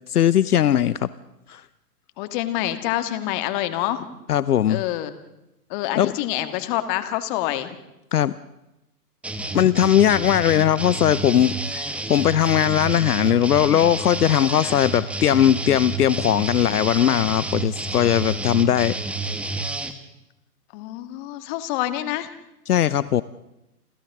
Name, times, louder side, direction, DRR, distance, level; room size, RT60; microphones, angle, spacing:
voice 1, 0.1-1.1 1.5-1.6 4.3-4.8 6.0-6.1 8.1-8.3 9.5-18.9 22.7-23.2, left 10 dB, 70° left, 17 dB, 0.8 m, -19 dB
voice 2, 2.2-4.1 4.7-5.1 5.7-7.8 10.2-10.4 14.6-14.8 20.7-22.3, left 14 dB, 30° left, 9 dB, 1.8 m, -27 dB
sound 1, 9.2-19.9, right 2 dB, 5° right, 1.0 m, -29 dB
29.5 x 28.0 x 3.7 m, 0.92 s
hypercardioid pair, 130°, 47 cm